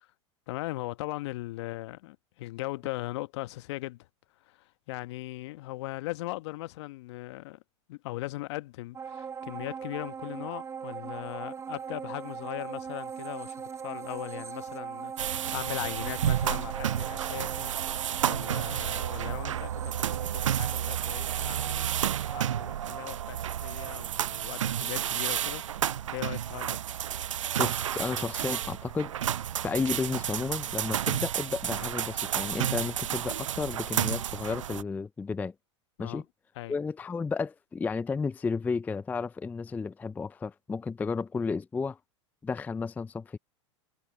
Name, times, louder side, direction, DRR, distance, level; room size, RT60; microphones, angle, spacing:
voice 1, 0.5-4.1 4.4-7.6 7.9-25.6 26.1-26.8 36.0-36.2 36.5-36.8, left 19 dB, 60° left, 1.2 m, -39 dB
sound 1, 8.9-22.6 23.0-23.1, right 6 dB, 20° right, 0.8 m, -41 dB
sound 2, 15.2-34.8, right 10 dB, 80° right, 0.7 m, -31 dB
voice 2, 27.6-29.1 29.6-35.5 36.0-36.2 36.7-42.0 42.4-43.4, left 4 dB, 10° left, 0.4 m, -32 dB
hypercardioid pair, 100°, 16 cm